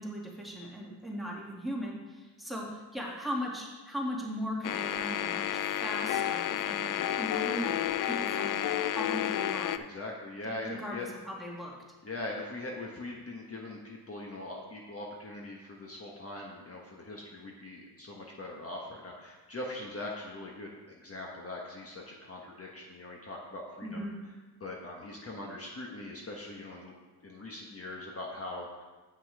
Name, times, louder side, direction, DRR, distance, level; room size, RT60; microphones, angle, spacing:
voice 1, 0.0-8.6 8.9-9.7 10.6-11.7 23.8-24.2, equal, ahead, -3 dB, 2.1 m, -38 dB
sound 1, 4.6-9.8, left 11 dB, 50° left, 0.4 m, -31 dB
voice 2, 9.7-11.1 12.0-24.1 24.6-26.9 27.2-28.8, left 2 dB, 35° left, -1 dB, 1.3 m, -41 dB
8.1 x 5.9 x 4.8 m, 1.3 s
cardioid pair, 75°, 42 cm